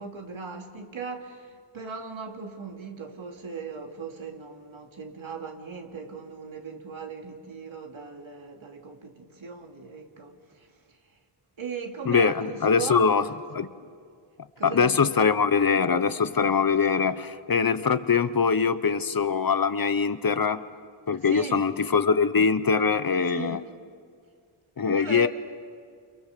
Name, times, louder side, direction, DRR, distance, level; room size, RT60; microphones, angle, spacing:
voice 1, 0.0-11.0 11.6-13.3 13.8-13.9 14.6-15.0 21.3-21.6 23.3-23.6 24.9-25.3, right 5 dB, 70° right, 3.0 m, -38 dB
voice 2, 12.1-13.2 13.5-13.7 14.6-20.6 21.1-23.6 24.8-25.3, left 5 dB, 45° left, 0.9 m, -23 dB
29.5 x 29.0 x 6.8 m
wide cardioid pair, 110°, 50 cm